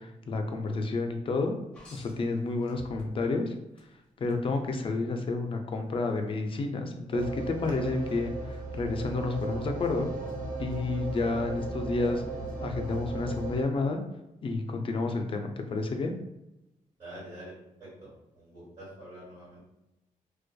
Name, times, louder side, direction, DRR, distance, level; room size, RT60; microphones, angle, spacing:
voice 1, 0.0-1.5 1.9-3.5 4.2-10.1 10.6-12.2 12.6-14.0 14.4-16.1, left 3 dB, 40° left, 5 dB, 0.4 m, -30 dB
sound 1, 1.7-3.4 3.8-4.4 6.0-6.1, left 1 dB, 10° left, 1.0 m, -51 dB
sound 2, 7.1-13.6, right 3 dB, 75° right, 0.8 m, -36 dB
voice 2, 17.0-17.5 17.8-19.6, right 1 dB, 40° right, -11 dB, 1.5 m, -46 dB
2.5 x 2.2 x 2.2 m, 0.90 s
cardioid pair, 110°, 14 cm